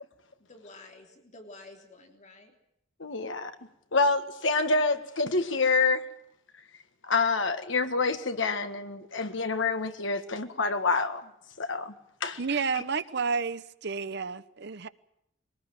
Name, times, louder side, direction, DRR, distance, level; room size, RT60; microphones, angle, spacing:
voice 1, 0.5-2.5, left 2 dB, 40° left, 3.3 m, -50 dB
voice 2, 3.0-3.5 3.9-6.1 7.1-11.2 11.6-11.9 12.2-12.4, left 3 dB, 70° left, 1.8 m, -27 dB
voice 3, 12.4-14.9, right 5 dB, 60° right, 1.0 m, -31 dB
22.0 x 19.0 x 9.0 m
head